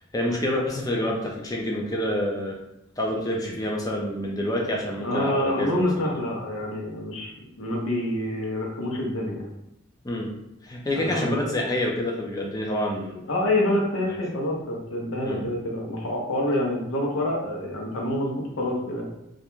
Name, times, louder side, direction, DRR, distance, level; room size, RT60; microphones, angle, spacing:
voice 1, 0.1-2.6 3.0-6.1 10.0-10.3 10.6-13.3 15.2-15.4, left 1 dB, 20° left, -1 dB, 0.4 m, -27 dB
voice 2, 5.0-7.3 7.6-9.5 10.9-11.3 13.3-19.1, left 1 dB, 85° left, -1 dB, 0.7 m, -27 dB
2.4 x 2.1 x 3.0 m, 0.87 s
head